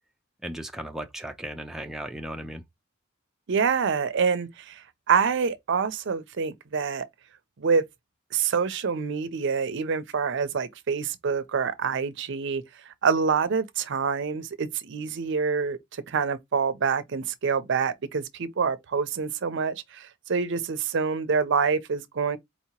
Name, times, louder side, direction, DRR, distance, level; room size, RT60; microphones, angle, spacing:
voice 1, 0.4-2.6, right 1 dB, ahead, 0.4 m, -36 dB
voice 2, 3.5-7.1 7.6-7.8 8.3-12.6 13.0-22.4, right 5 dB, 65° right, 0.5 m, -26 dB
4.2 x 2.8 x 2.9 m
head